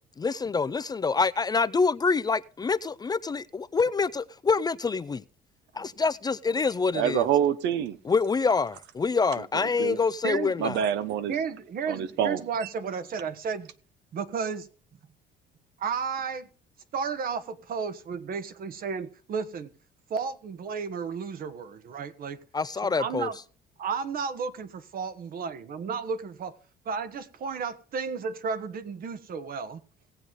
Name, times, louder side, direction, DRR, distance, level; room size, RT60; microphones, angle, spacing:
voice 1, 0.2-5.2 5.7-7.3 8.0-10.8 22.5-23.3, left 4 dB, 20° left, 0.5 m, -26 dB
voice 2, 6.9-8.0 9.8-10.0 10.6-11.3 11.9-12.4, right 9 dB, 75° right, 1.0 m, -26 dB
voice 3, 11.3-13.7 14.1-14.7 15.8-16.5 16.9-19.7 20.1-22.4 23.0-23.4 23.8-26.5 26.8-29.8, right 6 dB, 55° right, 1.4 m, -33 dB
18.0 x 7.8 x 3.7 m
cardioid pair, 105°, 18 cm